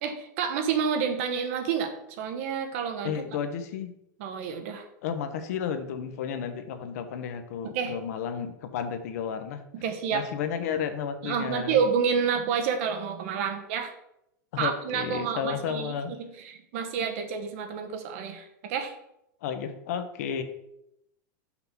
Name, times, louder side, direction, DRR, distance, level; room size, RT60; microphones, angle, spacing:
voice 1, 0.0-3.2 4.2-4.9 7.6-7.9 9.7-10.2 11.2-13.9 14.6-18.9, right 6 dB, 45° right, 6 dB, 0.9 m, -29 dB
voice 2, 3.0-3.9 5.0-9.6 10.1-11.8 14.5-16.1 19.4-20.4, left 7 dB, 50° left, 8 dB, 0.8 m, -32 dB
5.8 x 3.7 x 5.8 m, 0.81 s
supercardioid pair, 170°, 10 cm